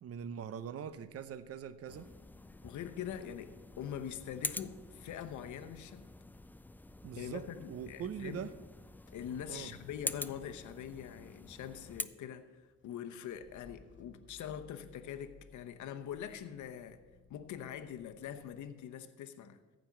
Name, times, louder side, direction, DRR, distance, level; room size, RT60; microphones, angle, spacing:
voice 1, 0.0-2.1 7.0-8.5 9.5-9.7, right 8 dB, 50° right, 0.7 m, -42 dB
Motor vehicle (road) / Engine starting / Idling, 0.9-8.6 8.8-18.7, left 5 dB, 40° left, 0.8 m, -65 dB
sound 1, 1.9-12.0, left 2 dB, 5° left, 0.4 m, -46 dB
voice 2, 2.6-6.1 7.2-8.5 9.1-17.0 17.3-19.6, left 9 dB, 75° left, 0.9 m, -43 dB
14.5 x 5.2 x 7.4 m
cardioid pair, 90°, 30 cm